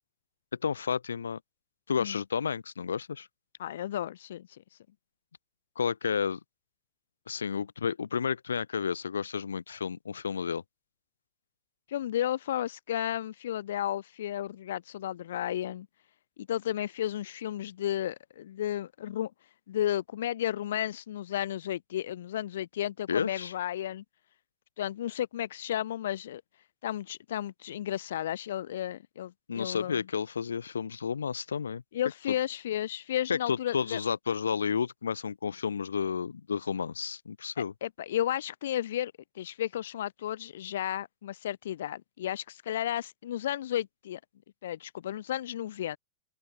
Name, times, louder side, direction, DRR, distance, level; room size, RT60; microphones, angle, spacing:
voice 1, 0.6-1.4 1.9-3.3 5.8-6.4 7.3-10.6 23.1-23.5 29.5-31.8 33.3-37.7, left 6 dB, 85° left, 3.0 m, -31 dB
voice 2, 3.6-4.5 11.9-15.9 16.5-19.3 19.7-24.0 24.8-26.4 26.8-30.0 31.9-34.0 37.8-44.2 44.6-46.0, left 11 dB, 70° left, 1.5 m, -33 dB
open air
hypercardioid pair, 105°, 0 cm